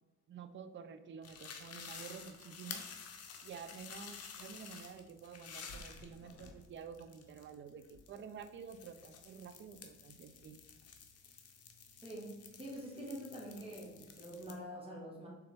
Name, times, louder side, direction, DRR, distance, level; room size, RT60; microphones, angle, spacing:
voice 1, 0.3-2.9 3.4-10.6, right 6 dB, 40° right, 10 dB, 0.4 m, -50 dB
sound 1, 1.2-14.5, left 6 dB, 55° left, 0.7 m, -52 dB
voice 2, 12.0-15.3, equal, 20° right, -4 dB, 1.4 m, -46 dB
3.9 x 3.4 x 3.3 m, 1.1 s
cardioid pair, 90°, 30 cm